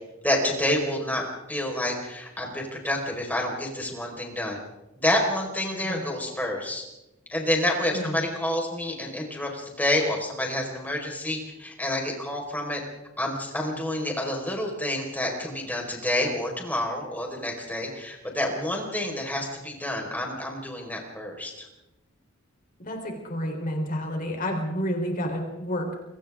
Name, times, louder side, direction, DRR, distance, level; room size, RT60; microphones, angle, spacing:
voice 1, 0.2-1.2 1.5-4.6 5.0-6.8 7.3-12.8 13.2-21.7, left 1 dB, 10° left, 0 dB, 4.8 m, -28 dB
voice 2, 7.9-8.2 22.8-25.9, equal, 40° left, 2 dB, 3.9 m, -30 dB
29.0 x 24.0 x 3.7 m, 0.97 s
head